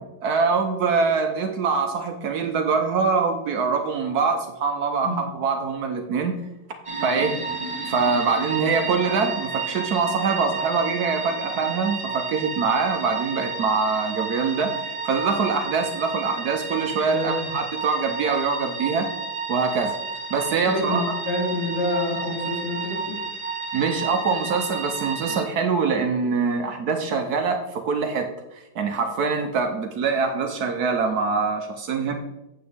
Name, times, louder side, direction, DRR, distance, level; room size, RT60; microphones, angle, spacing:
voice 1, 0.2-6.3 7.0-7.4 7.9-19.1 19.5-19.9 20.3-21.1 23.7-32.1, right 5 dB, 65° right, 5 dB, 1.2 m, -24 dB
sound 1, 6.8-25.4, right 4 dB, 20° right, 1.4 m, -31 dB
voice 2, 17.1-17.5 20.5-23.2, left 1 dB, 40° left, -6 dB, 3.7 m, -27 dB
8.6 x 7.8 x 3.5 m, 0.94 s
omnidirectional pair, 1.9 m